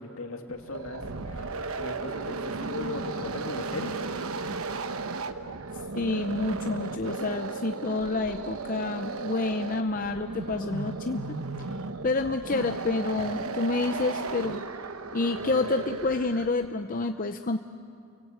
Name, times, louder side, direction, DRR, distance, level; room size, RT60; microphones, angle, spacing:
voice 1, 0.0-1.5 1.8-4.0, left 2 dB, 70° left, 3 dB, 2.6 m, -38 dB
sound 1, 0.6-16.7, right 3 dB, 75° right, 1.0 m, -35 dB
voice 2, 5.9-11.4 12.0-14.6 15.1-17.6, left 3 dB, 40° left, 7 dB, 0.6 m, -28 dB
29.5 x 24.0 x 8.1 m, 2.4 s
head